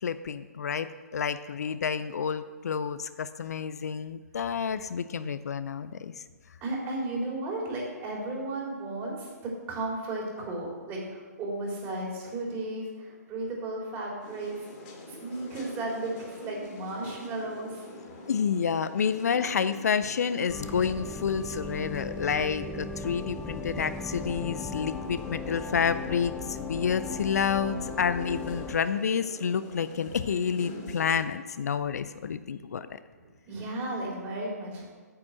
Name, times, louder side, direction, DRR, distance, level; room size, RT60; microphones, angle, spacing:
voice 1, 0.0-6.2 18.3-33.0, left 6 dB, 65° left, 13 dB, 0.5 m, -29 dB
voice 2, 6.6-9.3 9.7-14.7 15.1-17.8 33.2-35.0, right 2 dB, 25° right, -2 dB, 3.3 m, -34 dB
sound 1, 14.2-31.2, left 2 dB, 35° left, 2.6 m, -45 dB
sound 2, 20.5-28.8, left 4 dB, 10° left, 0.5 m, -38 dB
8.5 x 6.1 x 7.8 m, 1.4 s
figure-of-eight pair, 130°, 9 cm